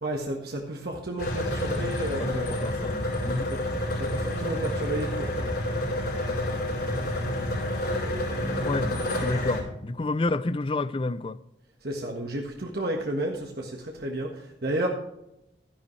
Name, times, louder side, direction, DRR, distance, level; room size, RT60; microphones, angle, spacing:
voice 1, 0.0-2.5 3.9-5.5 11.8-13.7 14.0-14.9, right 1 dB, 60° right, 1.5 m, -32 dB
sound 1, 1.2-9.6, left 1 dB, 55° left, 4.9 m, -29 dB
voice 2, 2.2-3.4 8.6-11.4, left 2 dB, 30° left, 0.4 m, -30 dB
13.5 x 10.5 x 3.2 m
head